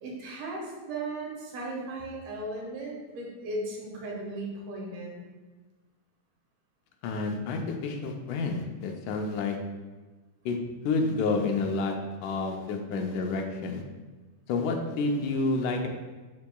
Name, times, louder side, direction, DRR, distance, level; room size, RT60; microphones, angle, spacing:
voice 1, 0.0-5.2, right 2 dB, 85° right, -2 dB, 2.9 m, -36 dB
voice 2, 7.0-9.6 10.5-10.6 10.8-12.0 12.2-13.8 14.5-15.9, left 3 dB, 85° left, 3 dB, 2.2 m, -29 dB
11.5 x 4.6 x 2.3 m, 1.3 s
omnidirectional pair, 3.5 m